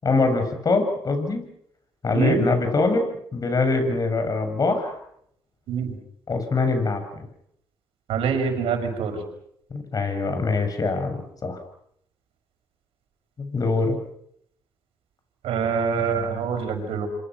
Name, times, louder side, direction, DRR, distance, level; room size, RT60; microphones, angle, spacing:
voice 1, 0.0-1.5 2.0-3.1 3.3-5.0 6.3-7.3 9.7-11.6 13.4-14.0, left 3 dB, 40° left, 7 dB, 7.4 m, -23 dB
voice 2, 2.1-2.5 5.7-5.9 8.1-9.2 15.4-17.1, right 6 dB, 85° right, 6 dB, 6.1 m, -25 dB
28.0 x 25.5 x 6.2 m, 0.71 s
cardioid pair, 75°, 9 cm